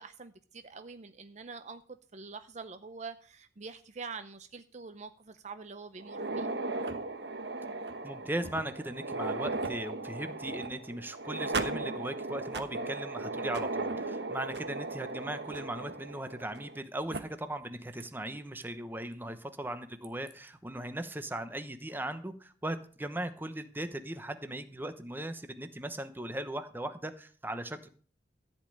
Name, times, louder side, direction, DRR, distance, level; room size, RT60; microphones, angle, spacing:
voice 1, 0.0-1.8 2.1-6.5, right 4 dB, 40° right, 0.6 m, -45 dB
sound 1, 6.0-16.8 17.1-17.2 18.0-18.1 18.6-18.7 20.0-20.3, right 3 dB, 65° right, 1.1 m, -36 dB
voice 2, 8.0-27.9, right 1 dB, 10° right, 0.9 m, -38 dB
14.0 x 5.3 x 8.7 m
head